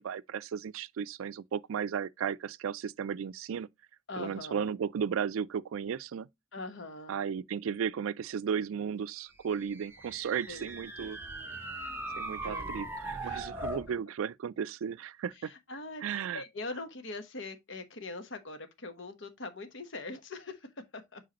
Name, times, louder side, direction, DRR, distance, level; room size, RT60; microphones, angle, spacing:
voice 1, 0.0-3.7 4.1-6.3 7.1-11.2 12.2-15.5 16.0-16.4, right 7 dB, 85° right, 0.3 m, -35 dB
voice 2, 4.1-4.7 6.5-7.1 10.5-10.7 11.0-11.1 12.4-13.6 15.3-21.2, left 2 dB, 65° left, 1.1 m, -43 dB
sound 1, 9.5-13.9, right 2 dB, 10° right, 1.0 m, -39 dB
7.5 x 4.9 x 2.9 m
head